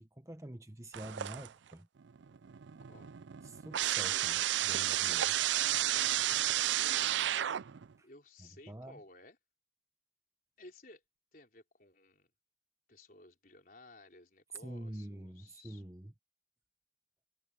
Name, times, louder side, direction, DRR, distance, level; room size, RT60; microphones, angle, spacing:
voice 1, 0.0-1.9 3.4-5.4 8.0-8.1 8.4-9.0 14.6-16.1, right 1 dB, 15° right, 0.9 m, -47 dB
sound 1, 0.9-1.7 2.1-7.9, right 13 dB, 80° right, 0.4 m, -32 dB
voice 2, 6.4-7.4 8.0-9.4 10.6-11.0 11.3-12.3 12.9-15.8, left 2 dB, 50° left, 4.5 m, -57 dB
head